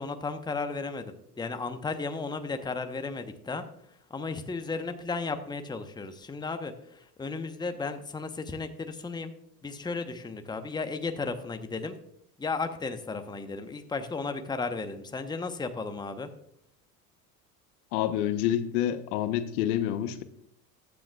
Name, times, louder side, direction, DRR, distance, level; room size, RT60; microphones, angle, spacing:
voice 1, 0.0-3.6 4.1-9.3 9.6-11.9 12.4-16.3, left 4 dB, 10° left, 8 dB, 0.9 m, -34 dB
voice 2, 17.9-20.2, left 11 dB, 65° left, 11 dB, 1.0 m, -28 dB
14.5 x 9.5 x 2.3 m, 0.69 s
hypercardioid pair, 75°, 48 cm